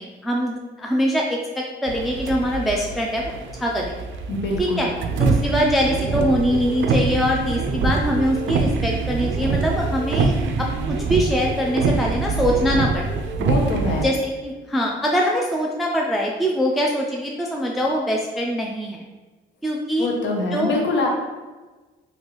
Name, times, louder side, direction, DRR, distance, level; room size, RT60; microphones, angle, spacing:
voice 1, 0.0-3.3 3.6-4.0 4.6-4.9 5.2-13.1 14.0-19.0 19.6-20.1 20.5-20.7, equal, ahead, -2 dB, 0.3 m, -23 dB
sound 1, 1.9-14.0, right 4 dB, 75° right, 0.4 m, -24 dB
voice 2, 4.3-4.9 13.4-14.1 20.0-21.1, left 2 dB, 65° left, 0 dB, 0.7 m, -24 dB
3.2 x 2.5 x 3.0 m, 1.3 s
cardioid pair, 90°, 20 cm